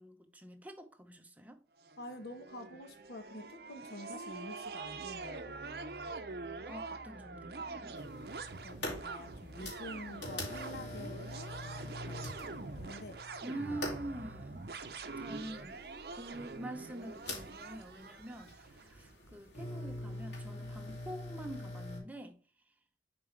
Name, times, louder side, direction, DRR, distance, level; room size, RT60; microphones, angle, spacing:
voice 1, 0.0-1.6 6.7-7.9 13.4-14.7 15.2-15.8 16.1-22.4, right 1 dB, 10° right, 0.7 m, -45 dB
sound 1, 1.8-18.9, right 3 dB, 55° right, 0.6 m, -45 dB
voice 2, 2.0-6.1 8.6-13.2 13.7-13.8, left 1 dB, 65° left, 1.1 m, -48 dB
sound 2, 8.0-22.0, left 1 dB, 80° left, 2.9 m, -44 dB
7.4 x 4.5 x 3.3 m
head